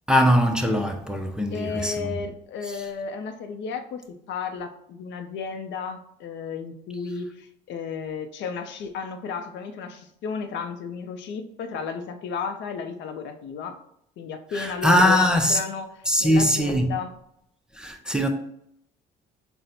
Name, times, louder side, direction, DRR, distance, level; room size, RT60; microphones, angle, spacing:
voice 1, 0.1-2.2 2.7-2.8 14.5-15.6 16.1-16.9 17.7-18.3, equal, 5° right, 0.5 m, -21 dB
voice 2, 1.5-4.0 4.3-13.8 14.2-17.1, left 5 dB, 65° left, 0.5 m, -33 dB
4.1 x 2.1 x 4.0 m
supercardioid pair, 80°, 20 cm